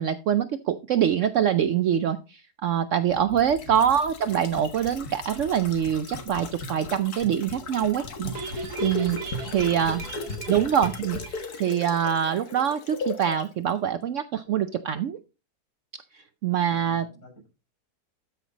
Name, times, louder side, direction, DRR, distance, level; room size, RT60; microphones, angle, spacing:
voice 1, 0.0-8.3 8.8-10.0 10.5-15.2 16.1-17.0, right 9 dB, 65° right, 11 dB, 0.8 m, -25 dB
sound 1, 3.1-13.5 13.7-13.8, left 2 dB, 75° left, 1.9 m, -36 dB
sound 2, 8.4-11.8 12.1-12.2 12.5-12.6, right 5 dB, 80° right, 1.9 m, -40 dB
voice 2, 9.4-10.6 16.7-17.5, right 2 dB, 50° left, -3 dB, 6.8 m, -47 dB
12.5 x 5.8 x 3.9 m, 0.30 s
omnidirectional pair, 1.7 m